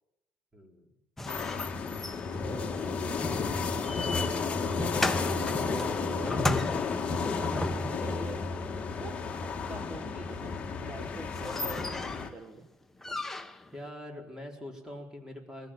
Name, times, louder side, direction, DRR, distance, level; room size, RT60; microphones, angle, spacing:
voice 1, 0.5-0.9 13.7-15.7, left 1 dB, 15° right, 2 dB, 4.6 m, -43 dB
sound 1, 1.2-8.2 10.6-10.7 11.0-11.1 11.3-12.4 13.0-13.7, left 2 dB, 5° left, 1.1 m, -36 dB
sound 2, 1.3-12.3, left 4 dB, 30° left, 2.2 m, -32 dB
sound 3, 2.1-6.9 7.3-7.7, right 12 dB, 80° right, 5.0 m, -48 dB
voice 2, 2.8-3.5 4.1-4.3 4.8-8.4 9.0-9.2 9.7-12.1 12.3-12.7, right 3 dB, 35° right, 6 dB, 1.7 m, -45 dB
22.0 x 16.0 x 7.5 m, 0.89 s
cardioid pair, 130°, 4 cm